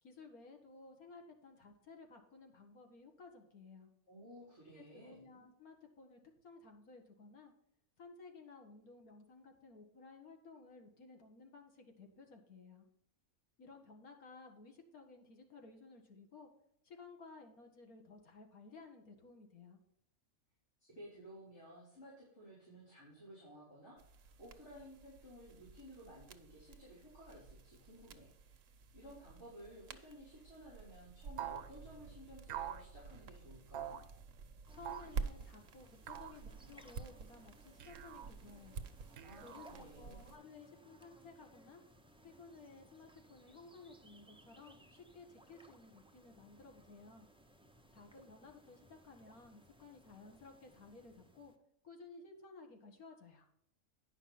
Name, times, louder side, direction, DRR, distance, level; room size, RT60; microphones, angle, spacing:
voice 1, 0.0-3.9 4.7-7.5 8.0-12.9 13.6-16.5 16.8-19.8 34.7-38.8 39.4-41.8 42.2-47.3 47.9-51.5 51.8-53.5, left 3 dB, 90° left, 3 dB, 2.2 m, -56 dB
voice 2, 4.1-5.2 20.8-34.0 39.2-40.3, equal, 50° left, -8 dB, 4.1 m, -56 dB
sound 1, 24.0-40.4, right 5 dB, 65° right, 1.1 m, -50 dB
sound 2, 31.4-31.7 32.5-32.9 33.7-34.0 34.8-35.2 36.1-36.4 37.8-38.3 39.2-39.9, right 10 dB, 85° right, 1.2 m, -45 dB
sound 3, 34.7-51.6, right 1 dB, 5° right, 0.4 m, -63 dB
9.9 x 5.9 x 5.8 m, 0.77 s
omnidirectional pair, 1.5 m